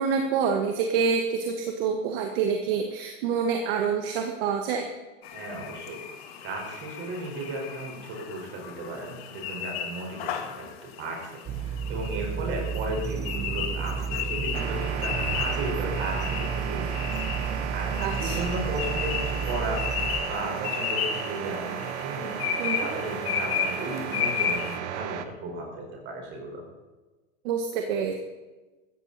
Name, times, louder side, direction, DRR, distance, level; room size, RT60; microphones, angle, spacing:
voice 1, 0.0-4.9 18.0-18.5 22.6-22.9 27.4-28.1, right 6 dB, 50° right, 4 dB, 1.7 m, -27 dB
sound 1, 5.2-24.8, left 8 dB, 55° left, 1.8 m, -34 dB
voice 2, 5.3-6.0 6.4-19.8 20.2-26.6, right 2 dB, 30° right, 0 dB, 4.9 m, -35 dB
sound 2, 11.5-20.2, right 6 dB, 10° right, 0.4 m, -32 dB
sound 3, 14.5-25.2, right 10 dB, 65° right, 1.3 m, -34 dB
15.5 x 14.0 x 4.2 m, 1.2 s
supercardioid pair, 170°, 37 cm